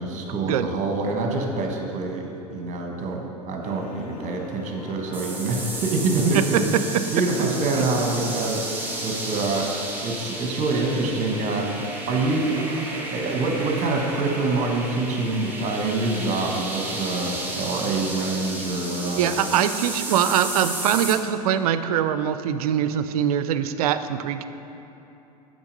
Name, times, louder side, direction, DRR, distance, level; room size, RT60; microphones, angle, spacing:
voice 1, 0.0-6.6 7.1-9.7 10.0-11.8 12.1-19.3, right 3 dB, 35° right, 1 dB, 1.3 m, -26 dB
sound 1, 3.6-19.7, left 5 dB, 75° left, 0.6 m, -40 dB
sound 2, 5.1-21.1, right 2 dB, 10° right, 1.1 m, -33 dB
voice 2, 19.2-24.5, right 9 dB, 65° right, 11 dB, 0.4 m, -23 dB
7.0 x 5.3 x 5.3 m, 3.0 s
hypercardioid pair, 85°, 20 cm